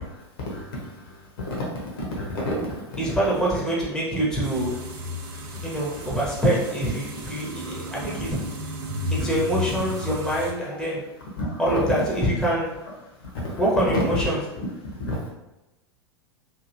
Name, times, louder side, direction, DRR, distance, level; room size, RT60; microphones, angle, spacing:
voice 1, 1.4-1.8 2.2-2.5 11.4-11.5 13.4-13.5 15.0-15.3, left 1 dB, 55° left, -2 dB, 1.0 m, -30 dB
voice 2, 3.0-4.7 5.6-8.4 9.1-11.0 11.6-12.7 13.6-14.4, right 1 dB, 5° left, -5 dB, 0.9 m, -25 dB
sound 1, 4.4-10.5, left 1 dB, 50° right, 0.6 m, -33 dB
2.9 x 2.7 x 2.6 m, 1.0 s
figure-of-eight pair, 90°, 14 cm